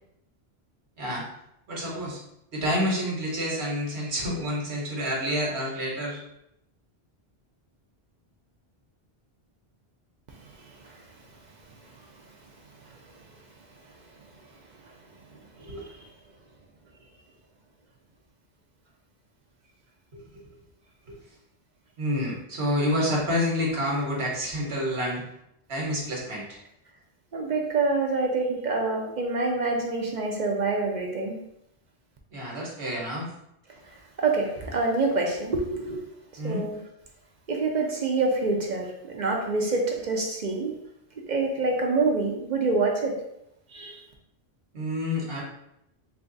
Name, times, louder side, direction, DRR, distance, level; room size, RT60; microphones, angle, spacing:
voice 1, 1.7-2.2 2.5-6.2 15.6-15.8 20.1-20.2 22.0-25.2 25.7-26.6 32.3-33.3 36.4-36.7 44.7-45.4, equal, 80° right, -4 dB, 1.3 m, -28 dB
voice 2, 27.3-31.4 33.9-36.0 36.4-36.8 37.5-40.8 41.3-43.1 43.7-44.0, right 3 dB, 55° right, 1 dB, 0.6 m, -26 dB
3.3 x 2.4 x 3.8 m, 0.80 s
omnidirectional pair, 1.1 m